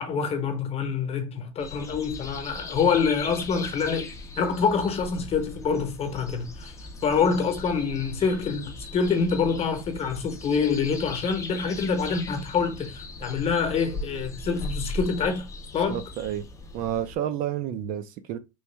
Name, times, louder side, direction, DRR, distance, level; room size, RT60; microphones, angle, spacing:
voice 1, 0.0-6.7 7.0-15.5 15.7-16.0, left 5 dB, 35° left, 1.0 m, -26 dB
sound 1, 1.6-17.2, left 2 dB, 15° left, 0.6 m, -39 dB
voice 2, 15.9-16.5 16.7-18.4, right 10 dB, 50° right, 0.5 m, -30 dB
3.2 x 2.6 x 3.3 m
hypercardioid pair, 105°, 18 cm